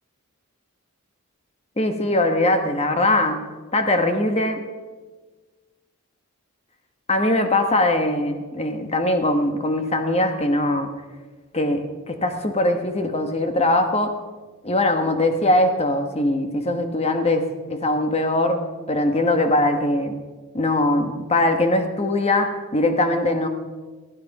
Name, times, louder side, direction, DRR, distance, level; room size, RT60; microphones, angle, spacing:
voice 1, 1.8-3.4 3.7-4.6 7.1-10.9 11.5-14.1 14.6-18.6 18.9-20.2 20.5-23.5, left 1 dB, 30° left, 6 dB, 1.2 m, -21 dB
16.5 x 9.5 x 5.4 m, 1.3 s
head